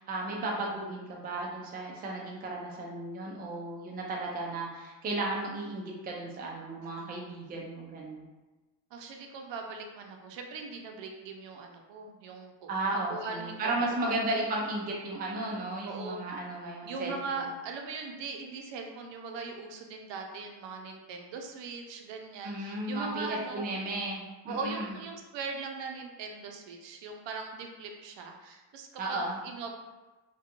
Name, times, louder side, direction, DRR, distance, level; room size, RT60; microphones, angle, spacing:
voice 1, 0.0-8.2 12.7-17.5 22.4-24.9 29.0-29.4, right 2 dB, 25° right, -2 dB, 0.3 m, -34 dB
voice 2, 8.9-12.7 13.1-14.1 15.8-16.2 16.8-23.6 24.5-29.8, right 4 dB, 75° right, 3 dB, 0.5 m, -40 dB
2.4 x 2.2 x 2.8 m, 1.2 s
cardioid pair, 135°, 44 cm